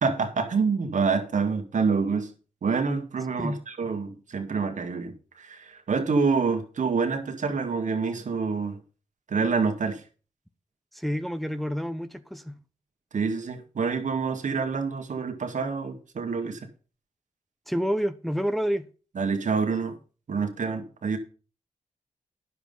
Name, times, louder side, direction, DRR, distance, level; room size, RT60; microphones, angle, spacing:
voice 1, 0.0-2.3 2.6-8.8 9.3-10.0 13.1-16.6 19.2-19.9 20.3-21.2, right 5 dB, 70° right, 2.0 m, -27 dB
voice 2, 10.9-12.6 17.7-18.9, equal, ahead, 1.0 m, -28 dB
10.0 x 7.2 x 5.5 m
supercardioid pair, 40°, 13 cm